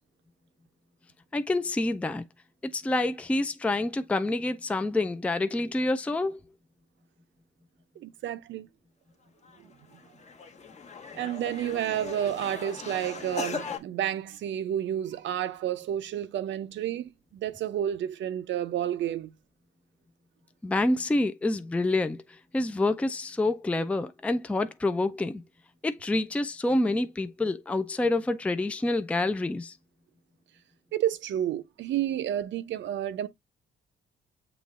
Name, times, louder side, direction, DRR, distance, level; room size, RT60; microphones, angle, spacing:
voice 1, 1.3-2.2 2.6-6.4 20.6-22.2 22.5-25.4 25.8-29.7, left 2 dB, 5° left, 0.4 m, -27 dB
voice 2, 8.0-8.7 9.6-9.7 11.1-19.3 30.9-33.3, right 11 dB, 70° right, 0.6 m, -30 dB
sound 1, 9.4-9.6 9.9-13.8, left 5 dB, 35° left, 1.0 m, -39 dB
6.9 x 3.0 x 2.4 m
cardioid pair, 90°, 20 cm